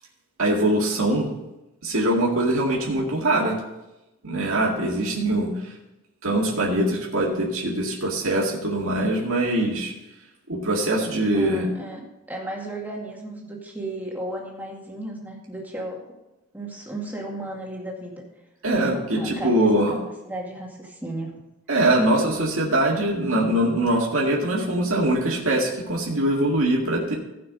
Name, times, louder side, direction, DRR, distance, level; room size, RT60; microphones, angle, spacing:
voice 1, 0.4-1.3 1.8-3.5 4.2-5.5 6.2-9.9 10.5-11.6 18.6-19.9 21.7-27.1, right 1 dB, 65° right, -3 dB, 2.2 m, -22 dB
voice 2, 11.3-16.0 16.5-18.2 19.2-21.3, right 1 dB, 10° right, -1 dB, 2.1 m, -34 dB
15.5 x 5.9 x 5.2 m, 0.96 s
head